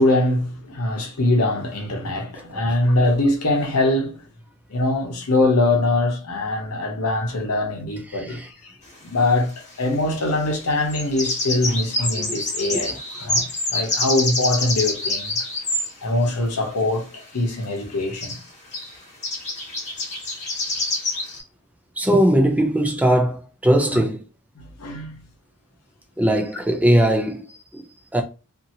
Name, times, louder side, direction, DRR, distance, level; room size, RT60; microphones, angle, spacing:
voice 1, 0.0-4.2 4.7-8.7 9.0-13.4 13.7-15.4 16.0-18.3 23.9-24.0 24.6-25.2, left 2 dB, 75° left, 0.8 m, -22 dB
voice 2, 8.1-8.5 12.2-12.4 12.7-13.0 22.0-24.2 26.2-27.4 27.7-27.8 28.1-28.2, right 1 dB, 5° right, 0.4 m, -19 dB
sound 1, 8.8-8.9 10.7-15.9 17.6-17.7 17.9-18.0 18.2-18.4 18.7-18.9 19.2-21.4, left 2 dB, 30° left, 1.1 m, -26 dB
2.8 x 2.6 x 2.6 m
head